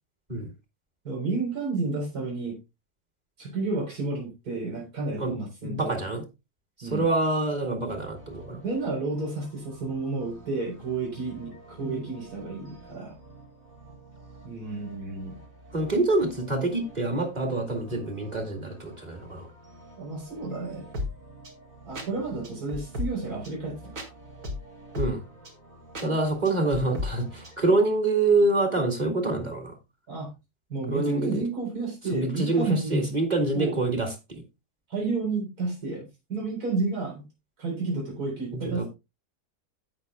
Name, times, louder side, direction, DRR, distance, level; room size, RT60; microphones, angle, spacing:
voice 1, 1.0-2.6 3.4-6.0 6.8-7.1 8.6-13.2 14.4-15.3 20.0-20.9 21.9-24.1 30.1-30.3 30.7-33.2 33.5-33.8 34.9-36.0 36.3-37.2 37.6-38.9, right 3 dB, 75° right, 4.4 m, -31 dB
voice 2, 5.6-6.2 6.8-8.6 11.8-12.1 15.7-19.5 25.0-25.2 26.0-29.7 30.9-31.4 32.1-34.4 38.5-38.8, right 2 dB, 25° right, 2.2 m, -26 dB
sound 1, 7.9-27.6, left 1 dB, 55° right, 2.5 m, -42 dB
16.0 x 6.0 x 2.2 m
omnidirectional pair, 1.6 m